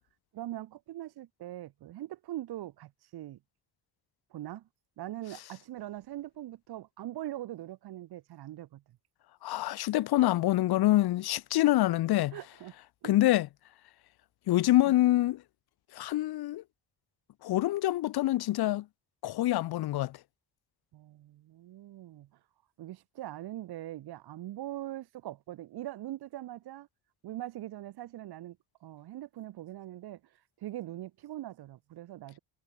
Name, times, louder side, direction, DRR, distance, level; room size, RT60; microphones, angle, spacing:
voice 1, 0.3-3.4 4.3-4.7 5.0-8.8 12.3-12.7 13.0-13.3 14.9-15.0 20.9-22.4 22.8-26.9 27.2-32.4, right 14 dB, 90° right, 6.9 m, -42 dB
voice 2, 9.4-12.3 13.0-13.5 14.5-15.4 15.9-16.6 17.4-18.8 19.2-20.2, left 15 dB, 80° left, 1.4 m, -26 dB
cardioid pair, 150°, 37 cm